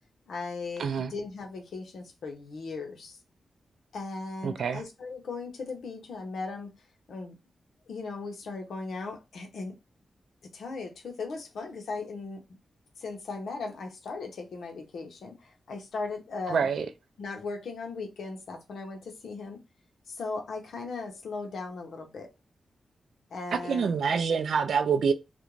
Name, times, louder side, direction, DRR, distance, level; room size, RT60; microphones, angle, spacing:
voice 1, 0.3-3.2 3.9-6.7 7.1-7.4 7.9-9.7 10.5-12.4 13.0-16.7 17.2-19.6 20.1-22.3 23.3-23.9, left 3 dB, 80° left, 0.7 m, -37 dB
voice 2, 0.8-1.1 4.4-4.8 16.5-16.9 23.6-25.1, right 6 dB, 75° right, 0.4 m, -26 dB
2.5 x 2.2 x 3.0 m
wide cardioid pair, 165°, 0 cm